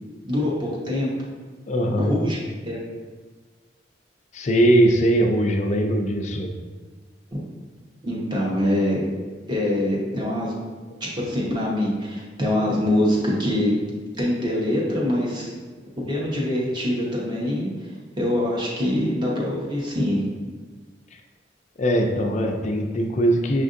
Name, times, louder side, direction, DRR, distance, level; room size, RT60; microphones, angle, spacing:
voice 1, 0.2-1.1 2.0-2.4 2.7-2.8 7.3-7.4 8.0-9.1 9.5-10.6 11.2-13.7 14.2-15.5 16.1-17.7 18.2-20.2, left 1 dB, 25° right, -5 dB, 0.9 m, -24 dB
voice 2, 1.7-2.2 4.3-6.5 21.8-23.6, right 1 dB, 40° left, 3 dB, 0.4 m, -20 dB
6.3 x 2.5 x 2.5 m, 1.4 s
head